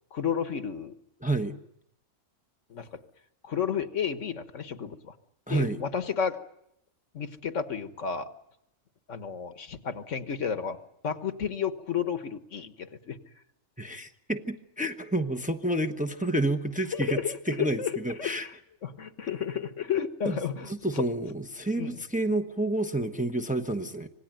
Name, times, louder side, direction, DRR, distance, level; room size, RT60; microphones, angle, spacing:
voice 1, 0.1-0.9 2.7-3.0 3.4-5.2 5.5-6.4 7.1-8.3 9.1-10.8 11.0-13.2 16.9-18.5 18.8-21.1 21.8-22.0, left 7 dB, 75° left, 10 dB, 1.6 m, -32 dB
voice 2, 1.2-1.5 5.5-5.8 13.8-18.5 20.3-20.4 20.7-24.1, right 1 dB, 5° right, 5 dB, 1.0 m, -29 dB
26.0 x 19.0 x 9.0 m, 0.80 s
omnidirectional pair, 1.3 m